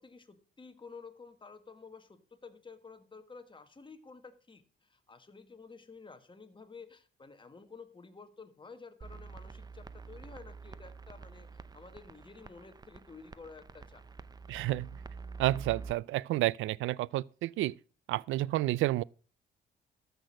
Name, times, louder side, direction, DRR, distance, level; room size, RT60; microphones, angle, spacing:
voice 1, 0.0-14.0, left 4 dB, 25° left, 1.6 m, -52 dB
sound 1, 9.0-15.9, right 5 dB, 20° right, 0.6 m, -47 dB
voice 2, 14.5-14.9 15.4-17.8 18.1-19.0, right 16 dB, 80° right, 0.4 m, -30 dB
13.5 x 6.1 x 6.3 m
cardioid pair, 90°, 20 cm